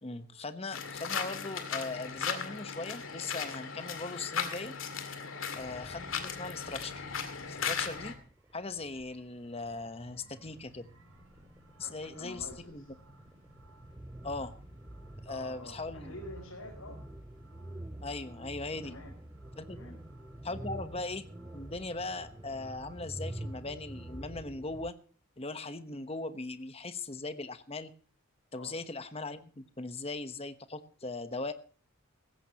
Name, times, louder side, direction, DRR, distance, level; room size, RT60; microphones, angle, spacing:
voice 1, 0.0-4.7 5.6-7.0 7.6-8.2 8.5-10.9 11.8-12.8 14.2-14.6 15.2-16.1 18.0-18.9 19.6-19.8 20.4-21.3 21.5-25.0 25.4-27.9 28.5-31.5, left 3 dB, 25° left, 10 dB, 1.1 m, -39 dB
sound 1, 0.7-8.1, left 6 dB, 65° left, 2.3 m, -37 dB
voice 2, 5.2-5.5 11.8-12.9 15.3-17.0 18.8-19.1 19.7-20.0 20.4-20.6 28.5-28.8, left 1 dB, 80° left, -2 dB, 5.5 m, -48 dB
sound 2, 5.6-24.9, right 1 dB, 10° right, 0.5 m, -47 dB
sound 3, 8.3-24.3, right 1 dB, 85° right, 5.2 m, -59 dB
18.0 x 15.5 x 2.9 m, 0.39 s
head